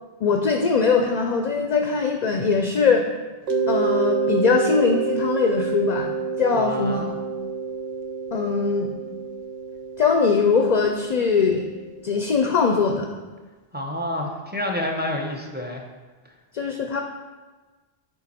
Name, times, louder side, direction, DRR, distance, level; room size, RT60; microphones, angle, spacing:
voice 1, 0.2-3.1 3.7-6.1 6.4-7.1 8.3-8.9 10.0-11.7 12.0-13.1 16.5-17.0, left 5 dB, 50° left, 3 dB, 0.5 m, -21 dB
Mallet percussion, 3.5-12.1, right 5 dB, 75° right, 0.9 m, -28 dB
voice 2, 6.5-7.1 13.7-15.8, left 1 dB, 10° right, 1 dB, 0.7 m, -28 dB
6.8 x 5.2 x 4.3 m, 1.3 s
omnidirectional pair, 1.0 m